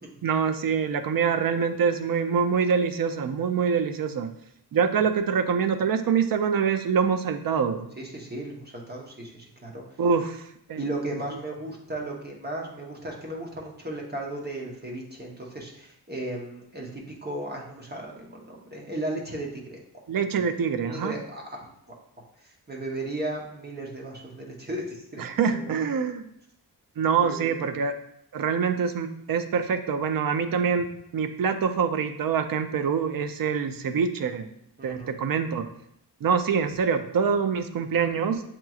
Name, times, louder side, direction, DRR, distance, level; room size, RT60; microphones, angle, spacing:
voice 1, 0.2-4.3 4.7-7.9 10.0-10.8 20.1-21.1 25.2-26.3 27.0-27.9 28.3-34.5 34.8-35.6 36.2-38.4, right 6 dB, 55° right, 7 dB, 0.5 m, -25 dB
voice 2, 8.0-9.8 10.8-19.8 20.8-21.6 22.7-25.2 25.5-26.0 27.1-27.5 34.8-35.1, right 1 dB, 25° right, -1 dB, 0.9 m, -35 dB
7.5 x 3.0 x 2.3 m, 0.72 s
wide cardioid pair, 140°, 41 cm